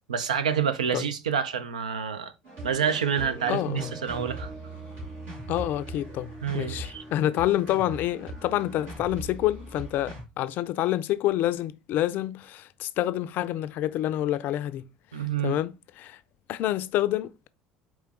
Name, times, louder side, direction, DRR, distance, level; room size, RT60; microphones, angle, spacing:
voice 1, 0.1-2.3 2.6-4.5 6.4-7.0 15.1-15.6, right 7 dB, 90° right, 0.4 m, -28 dB
sound 1, 2.4-10.2, right 2 dB, 70° right, 2.2 m, -40 dB
voice 2, 3.5-3.9 5.5-14.9 15.4-16.2 16.5-17.5, left 13 dB, 55° left, 0.3 m, -28 dB
4.6 x 3.0 x 3.6 m
hypercardioid pair, 70°, 4 cm